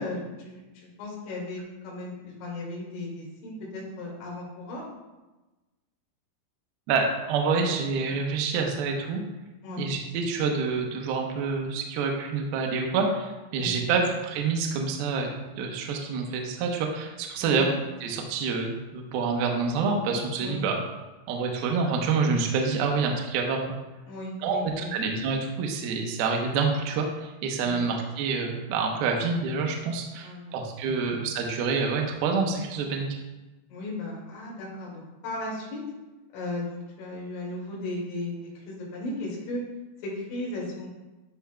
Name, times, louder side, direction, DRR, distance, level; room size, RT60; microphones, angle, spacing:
voice 1, 0.0-4.8 9.6-9.9 13.6-13.9 17.4-17.6 20.4-20.6 24.1-24.9 27.6-27.8 30.2-31.2 33.7-35.8 36.3-39.6 40.0-40.9, left 2 dB, 70° left, -4 dB, 4.4 m, -36 dB
voice 2, 6.9-9.2 9.8-17.7 18.0-20.8 21.3-23.8 24.4-33.2, right 4 dB, 75° right, 1 dB, 2.3 m, -27 dB
12.0 x 5.8 x 2.3 m, 1.1 s
omnidirectional pair, 5.6 m